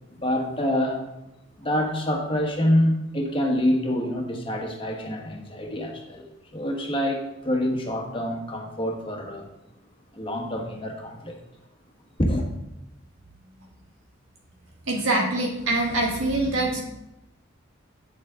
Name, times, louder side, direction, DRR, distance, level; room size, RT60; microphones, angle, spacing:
voice 1, 0.1-1.0 1.6-6.3 6.5-9.5 10.1-11.4 12.2-12.5, left 1 dB, 25° left, 1.3 m, -26 dB
voice 2, 14.9-16.8, right 2 dB, 85° right, 1.5 m, -24 dB
8.6 x 7.3 x 3.7 m
head